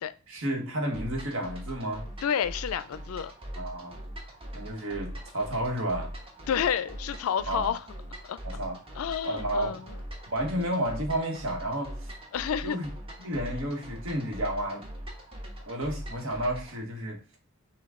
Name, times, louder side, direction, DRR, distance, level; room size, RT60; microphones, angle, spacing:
voice 1, 0.3-2.1 3.6-4.0 4.5-6.1 7.5-7.8 8.4-8.8 9.2-9.8 10.3-12.1 12.6-12.9 13.2-14.8 15.7-17.2, right 1 dB, 70° right, 1.2 m, -31 dB
sound 1, 0.9-16.8, equal, 25° right, 1.1 m, -41 dB
voice 2, 2.2-3.3 6.5-7.8 8.2-8.4 9.0-9.8 12.3-12.8, left 8 dB, 80° left, 0.4 m, -29 dB
5.8 x 2.3 x 3.6 m
head